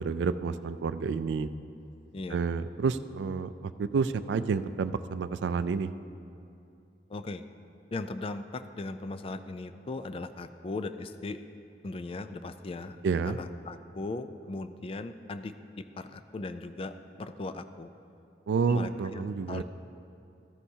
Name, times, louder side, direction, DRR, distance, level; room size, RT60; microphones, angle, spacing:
voice 1, 0.0-1.5 2.3-5.9 13.0-13.4 18.5-19.6, right 5 dB, 85° right, 13 dB, 0.3 m, -29 dB
voice 2, 7.1-7.4 7.9-11.4 11.8-13.0 13.3-17.9 18.7-19.6, left 2 dB, 35° left, 11 dB, 0.3 m, -38 dB
13.5 x 9.8 x 2.8 m, 2.7 s
head